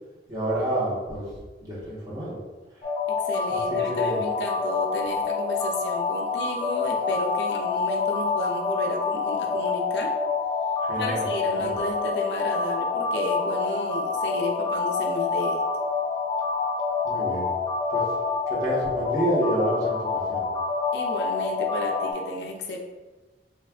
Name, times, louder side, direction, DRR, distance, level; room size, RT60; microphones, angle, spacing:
voice 1, 0.3-1.2 1.6-2.4 3.9-4.2 10.9-11.3 11.6-11.7 17.0-17.5 17.9-18.0 18.5-20.5, right 1 dB, 20° right, -8 dB, 1.1 m, -28 dB
sound 1, 2.8-22.1, left 4 dB, 35° left, 0.7 m, -27 dB
voice 2, 3.1-10.1 11.0-15.6 20.9-22.8, left 2 dB, 65° left, 2 dB, 0.4 m, -32 dB
3.5 x 3.2 x 2.4 m, 1.2 s
head